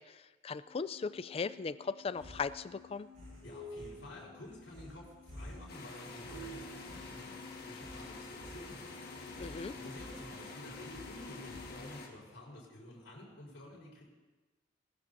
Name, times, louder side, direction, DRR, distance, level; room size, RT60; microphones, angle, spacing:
voice 1, 0.0-3.1 9.4-9.7, left 5 dB, 30° left, 15 dB, 0.3 m, -38 dB
sound 1, 0.6-11.8, left 2 dB, 75° right, 4.3 m, -53 dB
sound 2, 2.2-12.2, equal, 40° right, 4.4 m, -53 dB
voice 2, 3.4-8.9 9.7-14.0, left 1 dB, 85° left, -5 dB, 4.2 m, -51 dB
sound 3, 5.7-12.1, left 3 dB, 55° left, 1.8 m, -47 dB
20.0 x 13.0 x 2.7 m, 1.2 s
head